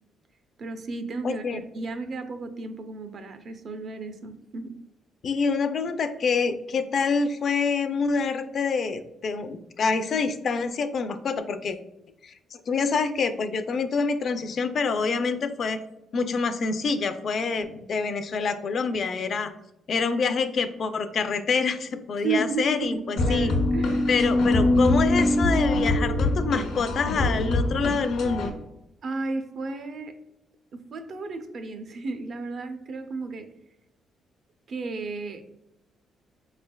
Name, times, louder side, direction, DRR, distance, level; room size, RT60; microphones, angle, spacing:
voice 1, 0.6-4.7 22.2-24.1 29.0-30.2 30.7-33.5 34.7-35.5, right 3 dB, 55° right, 8 dB, 0.5 m, -33 dB
voice 2, 1.2-1.6 5.2-11.8 12.2-15.8 16.1-19.5 19.9-23.5 24.1-28.5, left 5 dB, 55° left, 9 dB, 0.4 m, -26 dB
sound 1, 23.2-28.5, left 1 dB, 90° left, 0.8 m, -23 dB
4.3 x 3.3 x 2.2 m, 0.89 s
cardioid pair, 90°, 0 cm